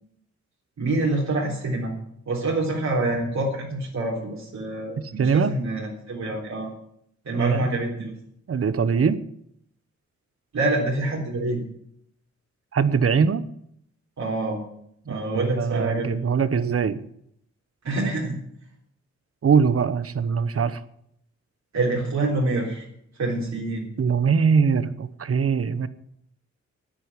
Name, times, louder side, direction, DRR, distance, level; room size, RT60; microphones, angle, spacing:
voice 1, 0.8-1.9 2.3-6.7 7.2-8.1 10.5-11.6 14.2-14.6 15.0-16.2 17.8-18.4 21.7-22.9 23.2-23.9, right 2 dB, 70° right, -4 dB, 3.8 m, -26 dB
voice 2, 5.2-5.5 7.3-7.7 8.5-9.2 12.7-13.4 15.3-17.0 19.4-20.8 24.0-25.9, right 6 dB, 50° right, 14 dB, 1.0 m, -22 dB
10.0 x 10.0 x 9.6 m, 0.72 s
wide cardioid pair, 100°, 29 cm